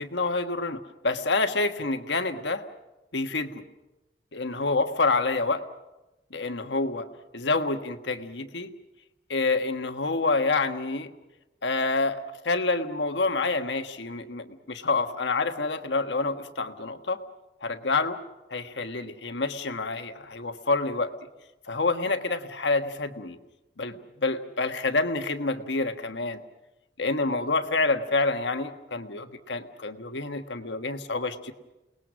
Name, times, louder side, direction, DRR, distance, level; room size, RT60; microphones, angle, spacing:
voice 1, 0.0-2.6 3.1-3.6 4.3-5.6 6.3-7.1 7.3-8.7 9.3-11.1 11.6-17.2 17.6-18.2 18.5-21.1 21.7-23.4 23.8-26.4 27.0-31.5, left 3 dB, 80° left, 7 dB, 1.4 m, -27 dB
29.0 x 19.5 x 6.3 m, 1.0 s
head